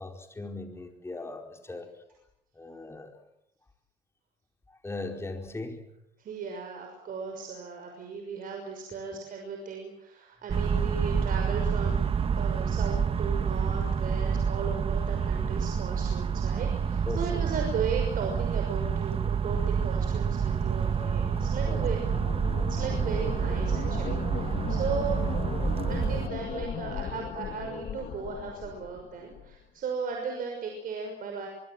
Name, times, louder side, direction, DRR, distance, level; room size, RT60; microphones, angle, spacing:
voice 1, 0.0-1.9 2.5-3.2 4.7-5.8 17.0-17.4 21.0-21.1 21.6-21.8, left 2 dB, 15° left, 3 dB, 4.8 m, -38 dB
voice 2, 6.2-22.0 22.6-25.2 25.9-31.5, right 5 dB, 55° right, 3 dB, 6.0 m, -36 dB
sound 1, 10.5-26.3, right 6 dB, 35° right, 1.1 m, -28 dB
sound 2, 20.3-29.6, left 8 dB, 55° left, 2.3 m, -37 dB
24.5 x 24.5 x 7.8 m, 0.82 s
cardioid pair, 110°, 17 cm